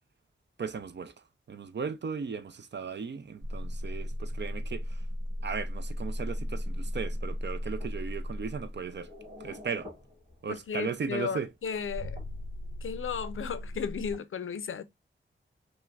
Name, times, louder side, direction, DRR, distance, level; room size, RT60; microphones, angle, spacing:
voice 1, 0.6-1.1 1.5-5.0 5.4-9.1 9.4-9.9 10.4-11.5, right 6 dB, 60° right, 0.5 m, -36 dB
sound 1, 3.4-10.6 11.6-14.2, left 1 dB, 40° right, 2.3 m, -37 dB
voice 2, 10.5-12.2 12.8-14.8, left 7 dB, 85° left, 0.4 m, -35 dB
5.6 x 2.1 x 2.3 m
wide cardioid pair, 100°, 21 cm